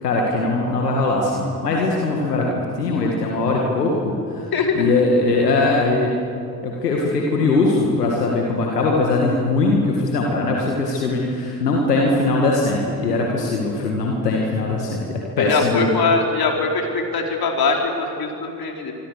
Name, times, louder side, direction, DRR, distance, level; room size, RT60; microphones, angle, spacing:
voice 1, 0.0-4.4 4.7-6.1 6.6-15.9, left 3 dB, 85° left, -1 dB, 2.1 m, -20 dB
voice 2, 4.5-4.9 15.4-18.9, left 4 dB, 50° left, 1 dB, 4.6 m, -22 dB
26.0 x 25.5 x 6.7 m, 2.5 s
figure-of-eight pair, 40°, 46 cm